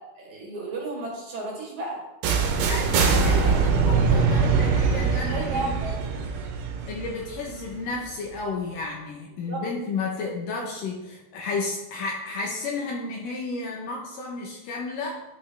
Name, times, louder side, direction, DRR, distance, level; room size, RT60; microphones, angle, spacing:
voice 1, 0.2-2.0 2.7-4.1 5.0-6.1 9.5-9.6, right 2 dB, 55° right, -3 dB, 3.1 m, -34 dB
sound 1, 2.2-8.1, right 5 dB, 80° right, 2.9 m, -23 dB
voice 2, 2.7-5.8 6.9-15.2, left 3 dB, 70° left, -1 dB, 2.4 m, -32 dB
11.5 x 6.1 x 3.5 m, 0.98 s
omnidirectional pair, 4.6 m